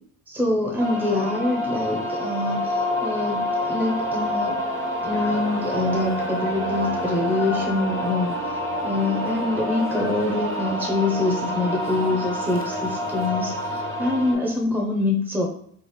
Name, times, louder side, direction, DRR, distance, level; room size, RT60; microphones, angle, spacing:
voice 1, 0.3-4.6 5.0-8.6 8.8-15.5, left 2 dB, 5° right, -1 dB, 0.6 m, -25 dB
sound 1, 0.8-14.3, equal, 40° right, 0.8 m, -28 dB
sound 2, 5.1-14.2, left 5 dB, 45° left, 0.5 m, -37 dB
3.2 x 2.5 x 3.1 m, 0.64 s
cardioid pair, 90°, 30 cm